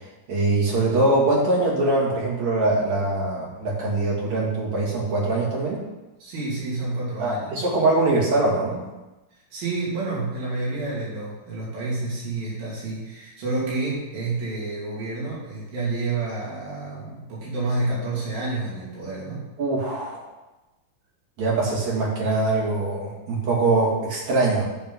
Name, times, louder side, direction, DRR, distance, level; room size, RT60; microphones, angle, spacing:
voice 1, 0.0-5.8 7.2-8.8 19.6-20.2 21.4-24.7, right 2 dB, 55° right, -5 dB, 3.7 m, -23 dB
voice 2, 6.2-7.5 9.5-19.5, right 2 dB, 75° right, -7 dB, 4.7 m, -29 dB
12.0 x 4.4 x 5.6 m, 1.1 s
omnidirectional pair, 4.1 m